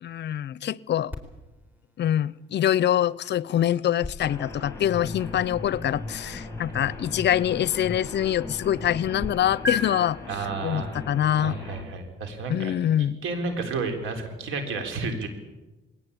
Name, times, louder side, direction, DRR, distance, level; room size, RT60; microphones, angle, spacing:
voice 1, 0.0-1.1 2.0-10.2 10.6-11.6 12.5-13.2, left 11 dB, 60° left, 21 dB, 0.7 m, -25 dB
sound 1, 1.1-9.3 9.6-9.8, left 3 dB, 10° right, 4.4 m, -39 dB
sound 2, 4.2-11.8, left 2 dB, 15° left, 7.7 m, -38 dB
voice 2, 10.3-11.0 11.3-15.3, right 4 dB, 85° right, 6 dB, 4.1 m, -32 dB
21.0 x 18.0 x 8.6 m, 1.1 s
cardioid pair, 90°, 20 cm